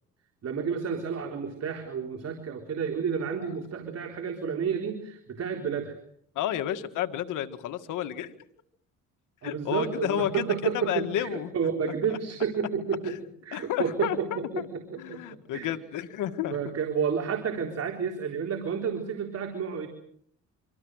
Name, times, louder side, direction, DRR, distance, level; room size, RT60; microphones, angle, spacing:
voice 1, 0.4-6.0 9.4-11.3 11.5-13.1 13.4-14.3 14.5-15.2 15.5-15.7 16.5-19.9, right 6 dB, 55° right, 3 dB, 3.8 m, -30 dB
voice 2, 6.4-8.3 9.4-11.5 12.1-12.2 13.0-13.2 13.5-14.7 15.0-16.6, left 11 dB, 85° left, 9 dB, 1.9 m, -31 dB
26.0 x 26.0 x 6.5 m, 0.66 s
cardioid pair, 90°, 30 cm